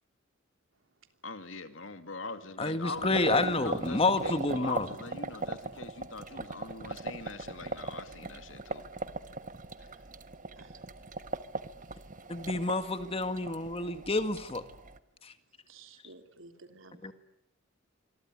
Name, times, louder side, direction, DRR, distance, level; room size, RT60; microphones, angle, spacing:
voice 1, 1.2-8.8, left 3 dB, 85° left, 9 dB, 2.5 m, -42 dB
voice 2, 2.6-4.9 12.3-14.6 15.2-15.3 17.0-17.1, left 2 dB, 30° left, 10 dB, 1.8 m, -29 dB
sound 1, 2.9-15.0, right 3 dB, 45° right, 1.3 m, -39 dB
voice 3, 15.7-17.1, right 3 dB, 90° right, 7 dB, 3.3 m, -53 dB
25.5 x 23.5 x 9.7 m, 0.80 s
head